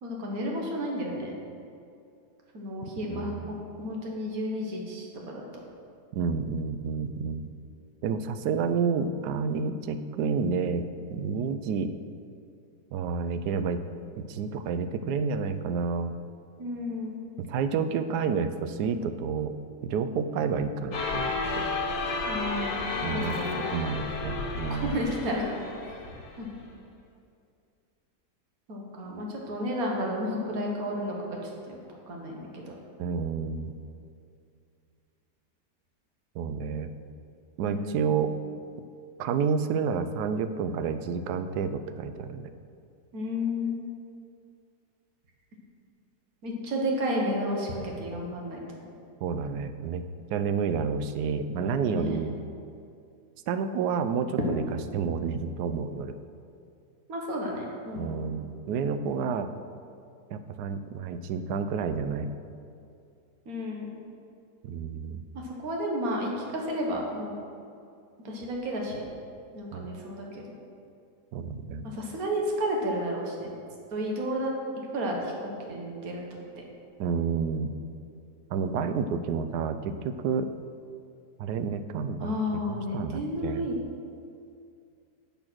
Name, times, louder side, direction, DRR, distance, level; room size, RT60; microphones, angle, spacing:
voice 1, 0.0-1.3 2.5-5.1 5.3-5.4 16.6-17.2 22.3-22.8 23.1-23.6 24.7-25.5 26.4-26.5 28.7-31.2 31.7-31.8 32.1-32.6 37.7-38.1 43.1-43.8 46.4-48.6 51.9-52.2 57.1-58.3 63.5-63.9 65.3-67.3 68.2-69.0 69.5-70.5 71.8-73.5 73.9-74.5 74.9-76.6 82.2-83.8, equal, 60° right, -1 dB, 1.8 m, -32 dB
voice 2, 3.1-3.5 6.1-7.5 8.0-11.9 12.9-13.8 14.2-16.2 17.4-19.5 19.8-21.7 23.0-25.0 33.0-33.7 36.3-36.9 37.6-38.3 39.2-42.5 49.2-50.0 50.3-52.4 53.5-54.6 54.9-56.2 57.9-59.5 60.3-62.3 64.6-65.2 69.7-69.9 71.3-71.8 77.0-77.7 78.5-80.5 81.4-83.7, right 5 dB, 80° right, 10 dB, 1.1 m, -30 dB
sound 1, 20.9-26.6, left 3 dB, 85° left, 1.8 m, -32 dB
7.9 x 6.9 x 6.2 m, 2.5 s
omnidirectional pair, 1.8 m